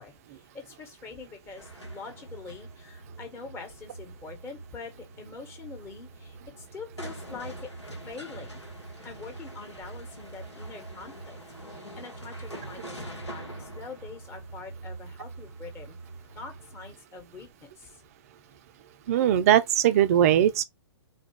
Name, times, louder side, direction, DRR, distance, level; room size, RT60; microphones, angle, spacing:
voice 1, 0.0-7.7 8.1-8.7 9.0-11.4 11.7-16.0 16.3-18.0, left 4 dB, 15° left, 1.2 m, -44 dB
sound 1, 1.6-16.9, right 2 dB, 90° left, 1.3 m, -43 dB
voice 2, 19.1-20.6, right 11 dB, 35° right, 0.4 m, -20 dB
4.0 x 2.3 x 3.5 m
figure-of-eight pair, 120°, 14 cm